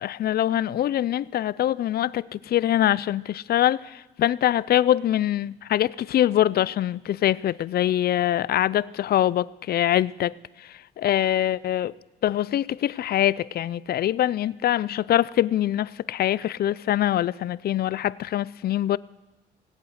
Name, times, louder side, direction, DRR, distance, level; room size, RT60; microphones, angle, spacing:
voice 1, 0.0-11.9 12.2-19.0, left 12 dB, 50° left, 0.4 m, -24 dB
18.5 x 8.3 x 6.4 m
cardioid pair, 90°, 20 cm